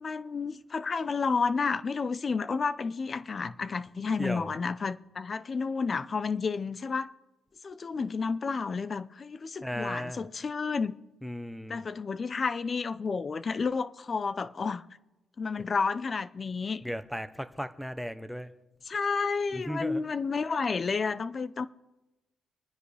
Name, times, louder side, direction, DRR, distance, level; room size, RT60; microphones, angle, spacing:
voice 1, 0.0-7.1 7.6-11.0 11.7-14.8 15.4-16.8 18.9-21.7, left 5 dB, 40° left, 0.6 m, -31 dB
voice 2, 4.2-4.5 9.6-10.2 11.2-11.8 16.8-18.5 19.5-20.0, equal, ahead, 0.9 m, -36 dB
25.5 x 10.0 x 3.4 m
cardioid pair, 90°, 0 cm